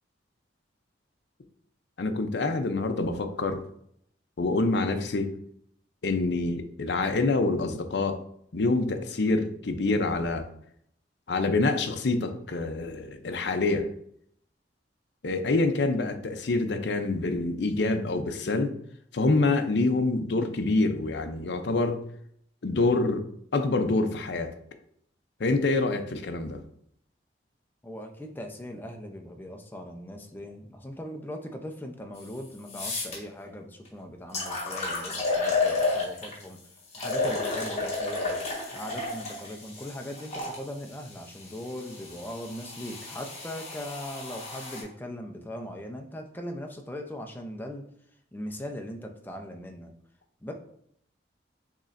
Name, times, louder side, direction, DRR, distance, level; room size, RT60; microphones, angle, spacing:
voice 1, 2.0-3.6 4.4-5.3 6.0-8.2 8.5-10.5 11.3-13.9 15.2-18.7 19.1-22.0 22.6-23.3 23.5-24.5 25.4-26.6, left 3 dB, 60° left, 7 dB, 0.5 m, -26 dB
voice 2, 27.8-36.6 37.0-38.4 38.7-47.8 48.3-49.9 50.4-50.5, left 1 dB, 10° left, 3 dB, 0.5 m, -39 dB
sound 1, 32.2-32.3 32.7-33.2 33.9-34.0 34.3-36.4 36.9-40.6 41.4-44.8, left 3 dB, 35° left, 1.3 m, -31 dB
6.5 x 3.2 x 2.5 m, 0.68 s
head